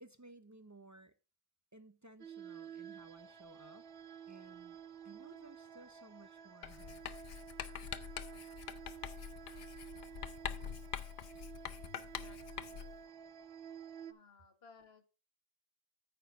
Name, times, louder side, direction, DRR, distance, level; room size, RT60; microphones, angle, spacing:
voice 1, 0.0-1.1 1.7-3.9 4.3-4.8 5.0-7.0, right 2 dB, 30° right, 0.3 m, -57 dB
sound 1, 2.2-14.1, right 8 dB, 75° right, 1.0 m, -52 dB
sound 2, 2.9-14.1, right 1 dB, 20° left, 4.1 m, -70 dB
Writing, 6.6-13.0, left 9 dB, 60° left, 0.7 m, -45 dB
voice 2, 12.1-13.1 14.1-15.1, left 4 dB, 75° left, 1.6 m, -62 dB
9.1 x 4.4 x 5.5 m
omnidirectional pair, 1.0 m